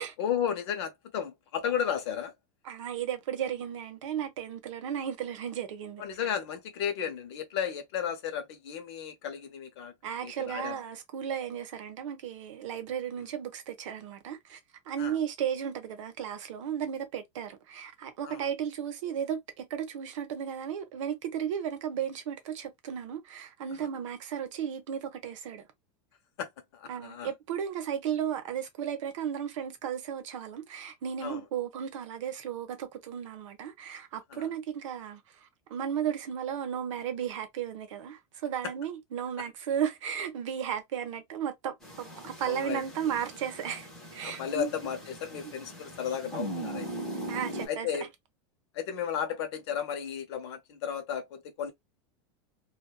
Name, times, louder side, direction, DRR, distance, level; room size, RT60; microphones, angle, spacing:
voice 1, 0.2-2.3 6.0-9.9 10.2-10.8 13.2-13.3 15.0-15.1 18.2-18.4 23.7-23.9 26.4-27.3 31.2-31.4 34.3-34.5 42.4-43.2 44.2-46.9 47.7-48.1 48.7-51.7, left 8 dB, 60° left, 0.8 m, -34 dB
voice 2, 2.7-6.0 10.0-14.6 14.9-25.6 26.9-44.7 45.4-45.5 47.3-47.9, right 9 dB, 90° right, 0.8 m, -35 dB
sound 1, 41.8-47.7, right 1 dB, 5° left, 0.6 m, -40 dB
2.5 x 2.3 x 2.2 m
supercardioid pair, 180°, 16 cm